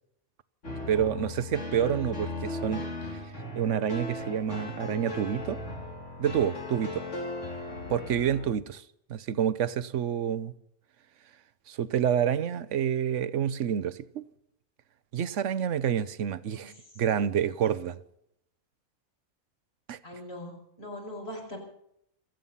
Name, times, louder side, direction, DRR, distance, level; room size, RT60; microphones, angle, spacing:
sound 1, 0.6-8.5, left 2 dB, 70° left, 3.7 m, -37 dB
voice 1, 0.9-3.2 3.6-5.6 6.2-7.0 7.9-8.8 9.1-10.5 11.7-14.2 15.1-18.0 19.9-20.0, right 9 dB, 75° right, 1.1 m, -28 dB
voice 2, 20.0-21.6, left 1 dB, 55° left, 5.6 m, -41 dB
27.0 x 9.2 x 5.6 m
omnidirectional pair, 1.3 m